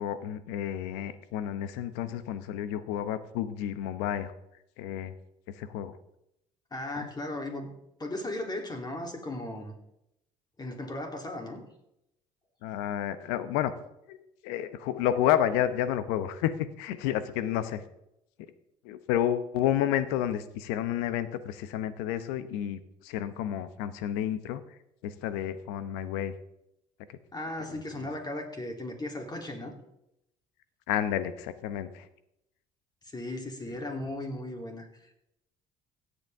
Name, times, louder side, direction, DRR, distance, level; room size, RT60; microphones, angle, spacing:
voice 1, 0.0-4.3 4.8-5.1 5.6-5.9 6.9-7.1 12.6-13.7 14.1-17.8 18.8-24.6 25.0-26.3 28.0-28.1 30.9-32.1, left 11 dB, 80° left, 13 dB, 0.9 m, -30 dB
voice 2, 6.7-7.7 8.0-9.7 10.6-11.6 27.3-29.7 33.0-35.1, left 1 dB, 25° left, 2 dB, 3.1 m, -36 dB
16.5 x 8.3 x 3.6 m, 0.81 s
hypercardioid pair, 65°, 17 cm